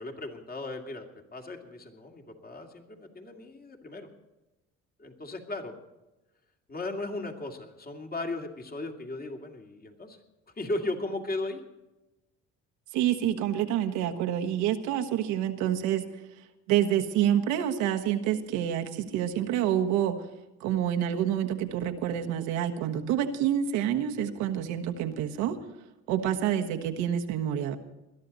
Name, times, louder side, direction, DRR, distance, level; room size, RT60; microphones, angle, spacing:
voice 1, 0.0-4.1 5.0-5.8 6.7-10.2 10.6-11.6, left 2 dB, 30° left, 3 dB, 2.5 m, -36 dB
voice 2, 12.9-16.0 16.7-20.2 20.6-25.6 26.1-27.8, right 10 dB, 90° right, 5 dB, 1.4 m, -27 dB
20.5 x 12.0 x 4.1 m, 1.0 s
cardioid pair, 95°, 29 cm